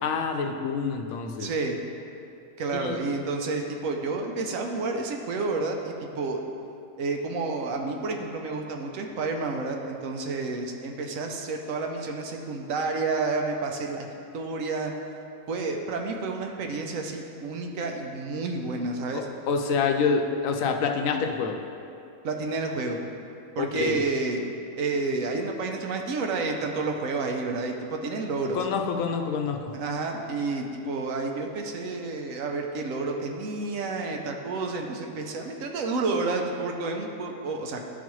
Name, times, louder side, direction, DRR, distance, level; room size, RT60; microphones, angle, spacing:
voice 1, 0.0-1.5 2.7-3.0 19.1-21.6 23.6-24.0 28.5-29.7, left 5 dB, 80° left, 4 dB, 1.0 m, -27 dB
voice 2, 1.4-1.8 2.6-6.4 7.0-14.1 14.3-14.9 15.5-19.3 22.2-23.0 23.6-24.5 24.8-28.6 29.7-37.8, right 3 dB, 80° right, 2 dB, 1.1 m, -30 dB
11.5 x 4.1 x 3.1 m, 2.6 s
omnidirectional pair, 1.4 m